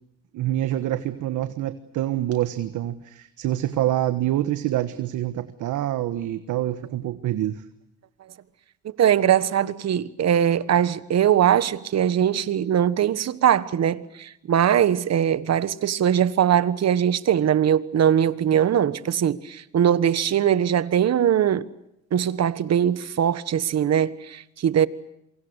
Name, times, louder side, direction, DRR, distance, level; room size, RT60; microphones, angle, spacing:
voice 1, 0.3-7.6, right 13 dB, 85° right, 1.4 m, -26 dB
voice 2, 8.8-21.7 22.1-24.9, right 9 dB, 60° right, 1.4 m, -21 dB
27.5 x 24.5 x 8.2 m
cardioid pair, 90°, 30 cm